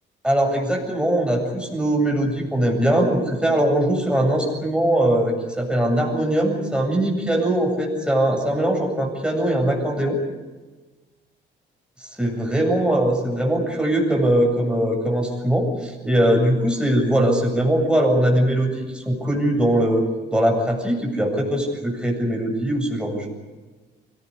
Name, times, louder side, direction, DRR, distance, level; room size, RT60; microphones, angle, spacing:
voice 1, 0.2-10.2 12.2-20.0 20.3-23.3, right 1 dB, 5° right, 1 dB, 7.9 m, -21 dB
24.5 x 19.0 x 8.5 m, 1.3 s
cardioid pair, 90°, 20 cm